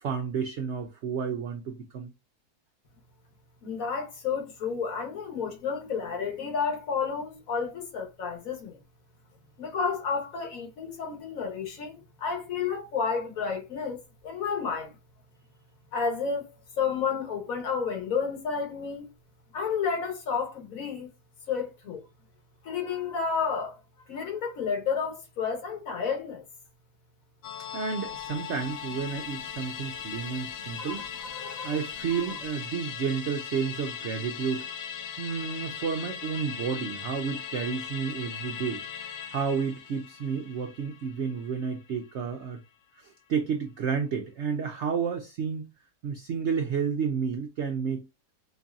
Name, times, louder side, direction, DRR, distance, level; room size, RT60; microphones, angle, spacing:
voice 1, 0.0-2.1 27.7-31.0 31.6-34.7 35.2-38.8 39.3-42.6 43.0-45.7 46.0-48.1, right 6 dB, 80° right, 0.6 m, -31 dB
voice 2, 3.6-8.8 9.6-14.9 15.9-19.1 19.5-21.1 21.5-22.0 22.6-23.8 24.1-26.4 30.8-31.8 32.1-32.2, left 6 dB, 60° left, 1.3 m, -31 dB
Musical instrument, 27.4-42.1 42.4-42.5, left 8 dB, 85° left, 1.3 m, -39 dB
4.4 x 2.7 x 2.3 m
omnidirectional pair, 1.8 m